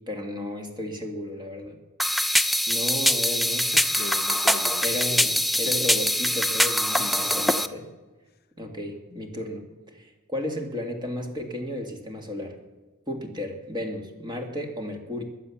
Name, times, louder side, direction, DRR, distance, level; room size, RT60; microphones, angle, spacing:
voice 1, 0.1-1.8 2.7-3.7 4.8-7.9 8.6-9.7 9.9-12.6 13.1-15.2, left 1 dB, 20° right, 3 dB, 2.0 m, -33 dB
sound 1, 2.0-7.7, equal, ahead, 0.4 m, -23 dB
voice 2, 3.7-5.4 5.6-5.7 6.9-7.4 9.1-9.2, left 4 dB, 45° left, 9 dB, 0.8 m, -39 dB
21.5 x 7.8 x 7.1 m, 1.2 s
head